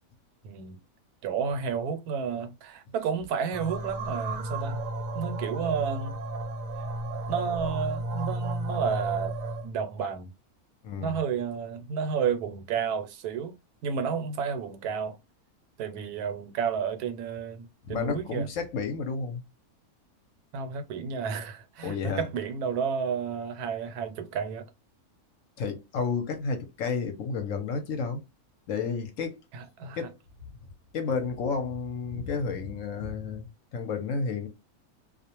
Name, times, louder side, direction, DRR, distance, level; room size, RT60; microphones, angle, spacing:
voice 1, 0.4-0.8 1.2-4.8 5.1-6.2 7.3-9.3 9.6-10.3 11.0-13.5 13.8-15.2 15.8-18.5 20.5-24.7 29.5-30.0, right 6 dB, 85° right, 1.1 m, -31 dB
sound 1, 3.5-9.7, right 2 dB, 65° right, 0.8 m, -33 dB
voice 2, 10.8-11.1 17.8-19.4 21.8-22.2 25.6-28.2 28.7-29.3 30.0-30.2 30.9-33.5 33.7-34.5, left 5 dB, 70° left, 0.9 m, -31 dB
2.4 x 2.1 x 2.8 m
omnidirectional pair, 1.6 m